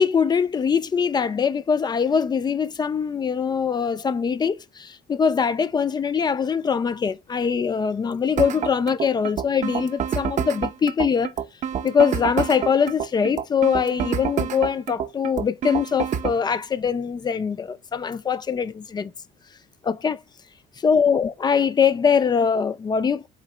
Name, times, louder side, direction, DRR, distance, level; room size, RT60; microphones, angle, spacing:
voice 1, 0.0-11.3 11.8-19.1 19.8-20.2 20.8-23.3, left 6 dB, 25° left, 0.4 m, -22 dB
sound 1, 8.4-16.4, right 8 dB, 45° right, 0.6 m, -27 dB
4.3 x 2.9 x 3.8 m
cardioid pair, 110°, 17 cm